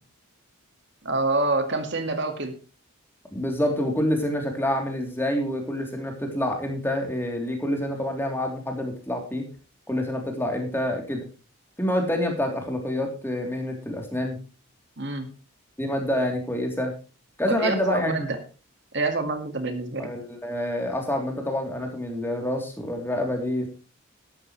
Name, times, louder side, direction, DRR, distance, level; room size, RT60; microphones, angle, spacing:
voice 1, 1.0-2.6 15.0-15.3 17.5-18.4 18.9-20.1, right 2 dB, 55° right, 7 dB, 2.0 m, -27 dB
voice 2, 3.3-9.5 9.9-11.3 11.8-14.4 15.8-16.9 17.4-18.3 20.0-23.7, left 1 dB, 10° left, 2 dB, 3.3 m, -27 dB
14.0 x 12.0 x 3.2 m, 0.33 s
head